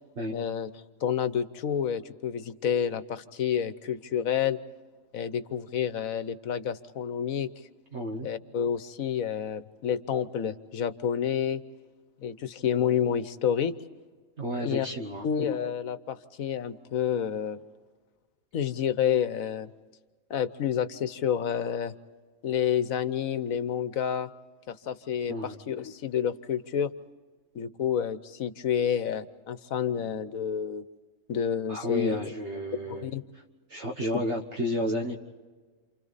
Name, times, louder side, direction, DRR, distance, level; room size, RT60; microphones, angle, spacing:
voice 1, 0.3-0.7 1.0-4.6 5.1-7.5 8.2-11.6 12.2-13.7 14.6-14.9 15.2-17.6 18.5-19.7 20.3-21.9 22.4-24.3 24.7-26.9 27.5-30.8 31.3-32.2 32.7-33.2, left 8 dB, 80° left, 12 dB, 1.4 m, -29 dB
voice 2, 7.9-8.3 14.4-15.2 25.3-25.6 31.7-33.1 33.7-35.2, left 1 dB, 55° right, 2 dB, 1.7 m, -31 dB
29.0 x 28.5 x 4.1 m, 1.4 s
omnidirectional pair, 1.4 m